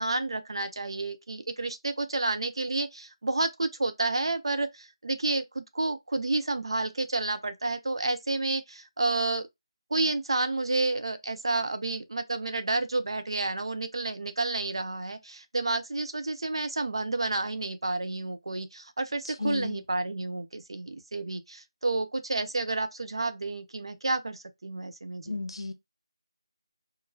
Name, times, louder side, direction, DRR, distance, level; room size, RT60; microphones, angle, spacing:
voice 1, 0.0-9.5 9.9-25.4, right 2 dB, 65° right, 0.7 m, -30 dB
voice 2, 19.2-19.8 25.3-25.7, left 3 dB, 65° left, 0.9 m, -34 dB
4.7 x 2.2 x 2.7 m
figure-of-eight pair, 170°, 3 cm